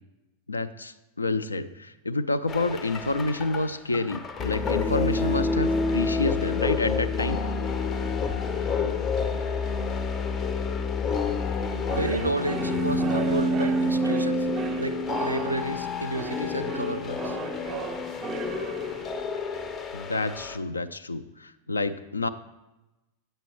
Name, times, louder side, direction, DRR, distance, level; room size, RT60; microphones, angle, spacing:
voice 1, 0.5-7.4 19.9-22.3, left 2 dB, 80° left, 11 dB, 0.3 m, -28 dB
sound 1, 2.5-20.6, left 3 dB, 25° left, 0.5 m, -28 dB
sound 2, 10.8-11.1 11.6-19.0, right 5 dB, 30° right, 0.5 m, -36 dB
voice 2, 11.9-14.5 14.8-17.4, right 2 dB, 85° right, 12 dB, 0.3 m, -31 dB
9.2 x 7.4 x 3.0 m, 1.0 s
figure-of-eight pair, 90°, 0 cm